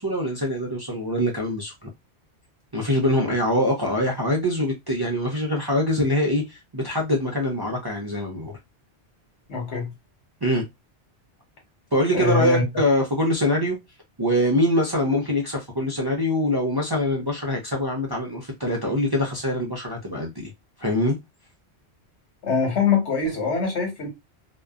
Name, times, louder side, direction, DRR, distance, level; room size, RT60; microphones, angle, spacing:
voice 1, 0.0-1.7 2.7-8.6 10.4-10.6 11.9-13.8 14.2-20.5 20.8-21.2, left 1 dB, 35° right, 0.4 m, -24 dB
voice 2, 9.5-9.9 12.1-12.6 22.4-24.1, left 5 dB, 80° left, 1.3 m, -23 dB
2.5 x 2.2 x 2.3 m
omnidirectional pair, 1.1 m